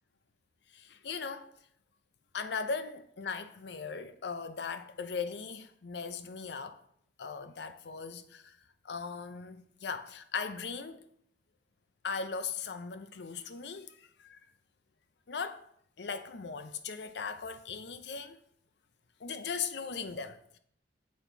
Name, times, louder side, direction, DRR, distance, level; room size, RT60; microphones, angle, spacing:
voice 1, 0.7-1.5 2.3-6.8 7.2-8.6 8.8-11.1 12.0-14.4 15.3-15.6 16.0-18.4 19.2-20.6, left 5 dB, 70° left, 0.6 m, -38 dB
7.4 x 4.2 x 4.5 m
head